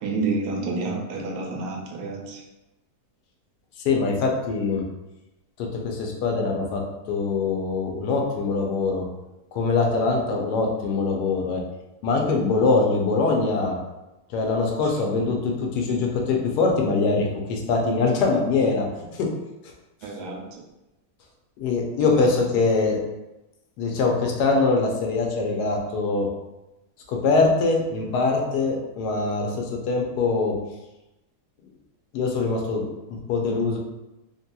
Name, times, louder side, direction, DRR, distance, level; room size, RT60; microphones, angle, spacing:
voice 1, 0.0-2.4 20.0-20.4, right 3 dB, 75° right, 0 dB, 1.1 m, -29 dB
voice 2, 3.8-4.8 5.6-6.8 7.1-9.1 9.5-11.6 12.0-13.7 14.3-19.3 21.6-23.0 23.8-26.3 27.1-30.5 32.1-32.8 33.1-33.8, left 3 dB, 85° left, 0 dB, 1.2 m, -23 dB
2.9 x 2.8 x 2.2 m, 0.98 s
omnidirectional pair, 1.7 m